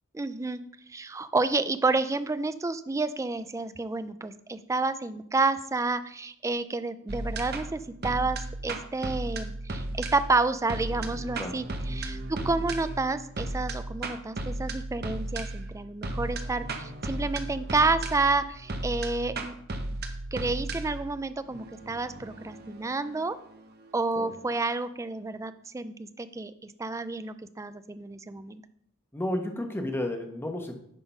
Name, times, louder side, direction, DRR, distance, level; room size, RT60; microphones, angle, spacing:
voice 1, 0.1-0.6 0.9-19.6 20.3-23.4 23.9-28.6, right 3 dB, 15° right, 13 dB, 0.3 m, -30 dB
sound 1, 7.1-24.2, right 2 dB, 45° right, 0.9 m, -35 dB
voice 2, 29.1-30.7, left 1 dB, 10° left, 4 dB, 1.0 m, -32 dB
9.9 x 3.8 x 5.6 m, 0.69 s
head